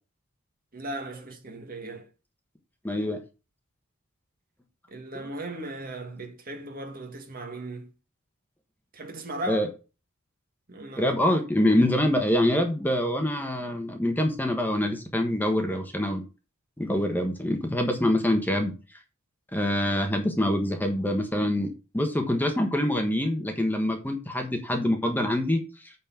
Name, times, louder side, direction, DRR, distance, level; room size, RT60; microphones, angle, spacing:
voice 1, 0.7-2.1 4.9-7.9 8.9-9.7 10.7-11.1, right 1 dB, 40° right, 1.9 m, -37 dB
voice 2, 2.8-3.2 9.5-9.7 10.9-16.2 16.8-18.7 19.5-25.6, left 1 dB, 10° left, 1.3 m, -25 dB
9.0 x 4.3 x 5.9 m
head